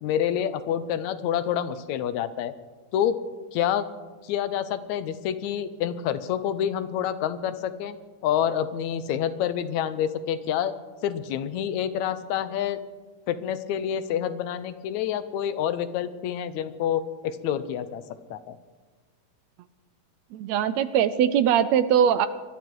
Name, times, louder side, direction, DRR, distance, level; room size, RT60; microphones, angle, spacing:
voice 1, 0.0-2.5 2.9-3.2 3.5-3.9 4.2-8.0 8.2-10.7 11.0-12.8 13.3-18.0 18.3-18.6, left 9 dB, 75° left, 12 dB, 2.0 m, -27 dB
voice 2, 20.3-22.3, right 9 dB, 75° right, 13 dB, 1.7 m, -21 dB
21.0 x 13.0 x 4.7 m, 1.3 s
omnidirectional pair, 3.4 m